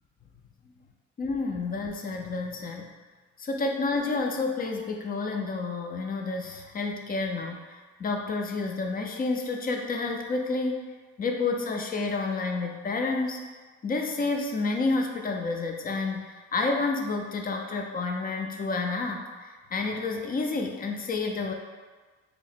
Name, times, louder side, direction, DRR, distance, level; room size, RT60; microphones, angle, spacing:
voice 1, 1.2-2.9 3.4-10.9 11.2-13.4 13.8-21.5, left 3 dB, 30° left, 2 dB, 0.4 m, -30 dB
2.9 x 2.0 x 4.1 m, 1.4 s
cardioid pair, 90°, 30 cm